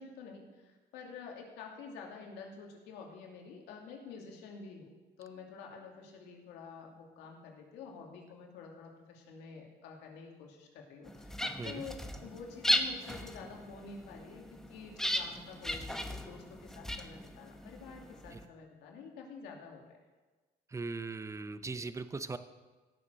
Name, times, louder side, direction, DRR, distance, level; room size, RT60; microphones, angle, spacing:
voice 1, 0.0-4.9 5.2-20.0, left 5 dB, 90° left, 1 dB, 2.6 m, -49 dB
sound 1, 11.1-18.5, equal, 5° left, 1.0 m, -37 dB
voice 2, 20.7-22.4, right 3 dB, 15° right, 11 dB, 0.7 m, -39 dB
16.5 x 7.0 x 6.7 m, 1.3 s
cardioid pair, 110°, 17 cm